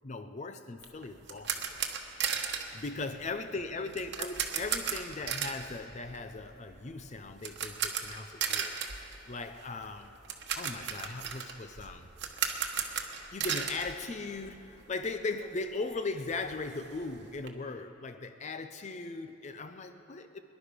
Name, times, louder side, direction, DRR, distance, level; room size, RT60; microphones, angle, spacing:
voice 1, 0.0-1.8 2.6-8.8 9.3-10.1 10.5-12.1 13.3-20.4, left 3 dB, 40° left, 9 dB, 0.6 m, -38 dB
sound 1, 0.8-14.8 15.0-15.2 15.6-15.7 15.9-17.5, right 7 dB, 60° right, 1.1 m, -36 dB
22.5 x 11.0 x 5.1 m, 3.0 s
head